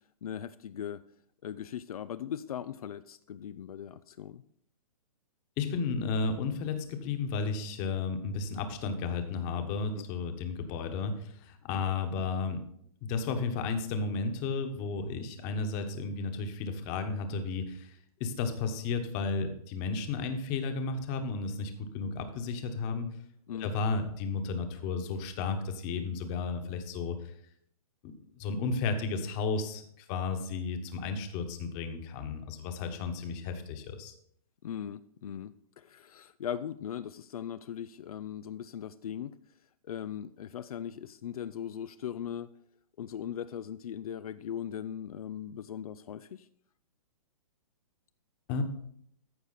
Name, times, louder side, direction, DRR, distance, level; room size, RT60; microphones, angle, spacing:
voice 1, 0.2-1.0 1.4-4.4 9.9-10.0 23.5-23.7 34.6-39.4 39.8-42.5 43.0-46.5, left 9 dB, 75° left, 13 dB, 0.5 m, -39 dB
voice 2, 5.6-12.6 13.0-23.1 23.6-27.3 28.4-34.1 48.5-48.6, left 4 dB, 30° left, 6 dB, 1.2 m, -33 dB
14.0 x 4.9 x 4.1 m, 0.67 s
hypercardioid pair, 150°, 19 cm